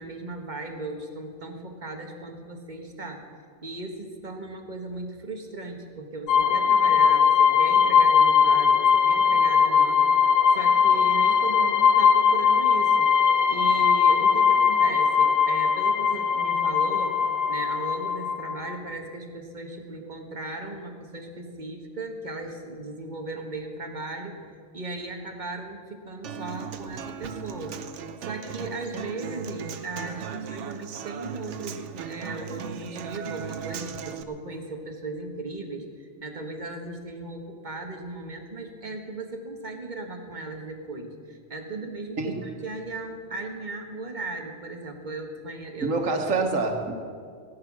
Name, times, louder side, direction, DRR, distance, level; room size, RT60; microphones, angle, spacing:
voice 1, 0.0-3.2 3.6-13.2 13.5-17.1 17.5-24.3 24.7-27.8 28.2-45.9, right 2 dB, 40° right, 4 dB, 1.5 m, -37 dB
sound 1, 6.3-18.7, left 6 dB, 80° left, 1.2 m, -20 dB
Human voice / Acoustic guitar, 26.2-34.2, right 7 dB, 70° right, 1.1 m, -37 dB
voice 2, 45.8-46.9, right 3 dB, 85° right, 4 dB, 1.8 m, -26 dB
17.5 x 9.7 x 6.1 m, 2.2 s
omnidirectional pair, 1.3 m